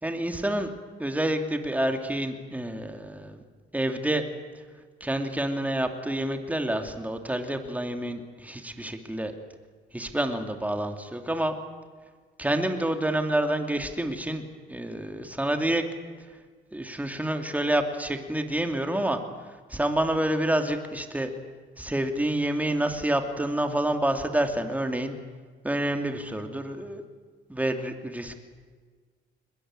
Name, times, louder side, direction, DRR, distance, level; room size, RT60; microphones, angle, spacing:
voice 1, 0.0-0.7 1.0-3.4 3.7-4.2 5.0-9.4 9.9-11.5 12.4-15.8 16.7-21.3 21.8-25.1 25.6-27.0 27.5-28.4, right 1 dB, 5° right, 5 dB, 2.7 m, -28 dB
21.5 x 21.0 x 9.0 m, 1.5 s
cardioid pair, 90°, 20 cm